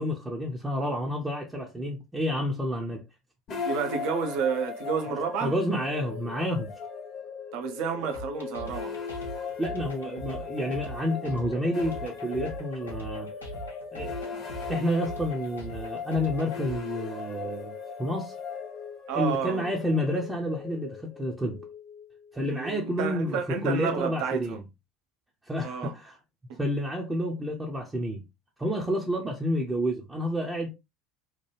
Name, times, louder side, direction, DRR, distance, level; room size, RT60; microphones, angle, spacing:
voice 1, 0.0-3.0 5.4-6.7 9.6-13.3 13.9-17.7 18.0-18.3 19.1-21.6 22.3-24.6 25.5-26.2 26.6-28.2 28.6-30.7, equal, 10° right, 0.6 m, -29 dB
sound 1, 3.5-22.6, left 6 dB, 40° left, 0.8 m, -38 dB
voice 2, 3.6-5.5 7.5-9.0 19.1-19.7 22.5-24.6 25.6-25.9 26.5-26.6, right 6 dB, 55° right, 0.6 m, -30 dB
sound 2, 8.1-16.8, right 2 dB, 80° left, 0.7 m, -41 dB
2.9 x 2.3 x 3.1 m
figure-of-eight pair, 70°, 0 cm